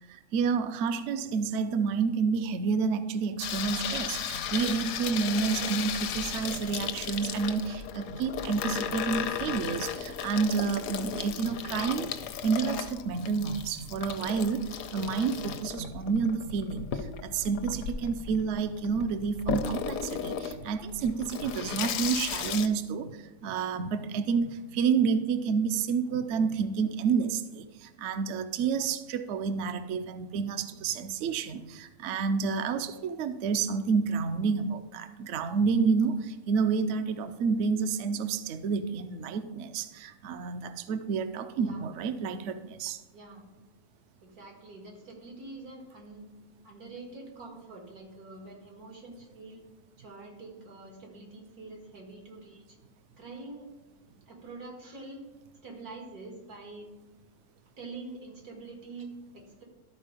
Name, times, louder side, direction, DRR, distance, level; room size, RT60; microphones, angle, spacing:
voice 1, 0.1-12.1 12.4-14.6 14.9-43.0, right 5 dB, 65° right, 10 dB, 0.8 m, -29 dB
Water tap faucet / Sink (filling or washing), 3.4-22.7, left 8 dB, 75° left, 1.0 m, -35 dB
voice 2, 41.6-41.9 43.1-43.4 44.2-46.3 46.6-49.7 50.0-52.8 53.2-53.7 54.3-55.3 55.6-56.9 57.8-59.6, right 3 dB, 85° right, 0 dB, 2.3 m, -45 dB
12.0 x 4.4 x 5.0 m, 1.1 s
omnidirectional pair, 1.5 m